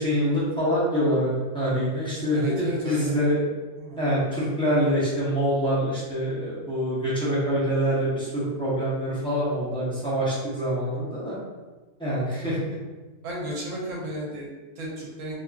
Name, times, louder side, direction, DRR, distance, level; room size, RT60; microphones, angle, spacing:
voice 1, 0.0-3.4 4.0-11.4 12.0-12.6, equal, 5° left, -9 dB, 0.6 m, -25 dB
voice 2, 2.3-3.1 3.8-4.0 12.4-12.6 13.2-15.3, right 1 dB, 75° right, -3 dB, 1.1 m, -34 dB
2.8 x 2.6 x 2.3 m, 1.3 s
omnidirectional pair, 1.4 m